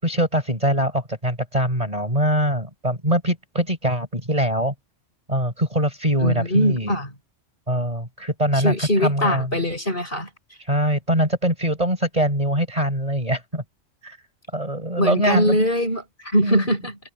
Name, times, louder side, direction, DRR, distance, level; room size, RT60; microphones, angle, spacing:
voice 1, 0.0-4.7 5.3-6.9 7.7-9.5 10.7-13.6 14.0-14.2 14.5-15.7 16.4-16.6, right 1 dB, 30° right, 6.4 m, -23 dB
voice 2, 6.2-7.1 8.5-10.3 15.0-17.0, equal, 40° left, 6.4 m, -22 dB
omnidirectional pair, 1.3 m